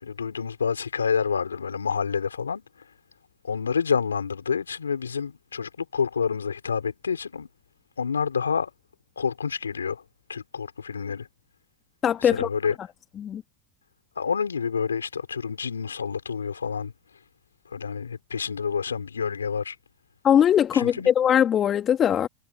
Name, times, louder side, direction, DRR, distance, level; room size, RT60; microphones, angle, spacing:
voice 1, 0.0-2.6 3.4-7.5 8.0-8.7 9.2-10.0 10.3-11.3 12.2-12.7 14.2-16.9 17.7-19.8 20.7-21.1, left 6 dB, 85° left, 4.2 m, -28 dB
voice 2, 12.0-12.5 13.2-13.4 20.2-22.3, left 9 dB, 35° left, 1.9 m, -20 dB
hypercardioid pair, 85°, 0 cm